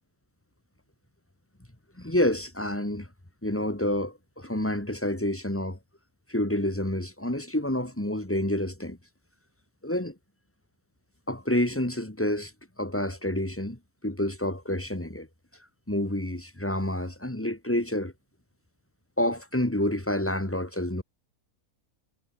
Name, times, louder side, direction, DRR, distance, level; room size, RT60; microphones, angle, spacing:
voice 1, 2.0-3.1 3.4-5.8 6.3-9.0 9.8-10.2 11.3-12.5 12.8-15.3 15.9-18.1 19.2-21.0, left 1 dB, 10° left, 1.9 m, -28 dB
omnidirectional pair, 1.5 m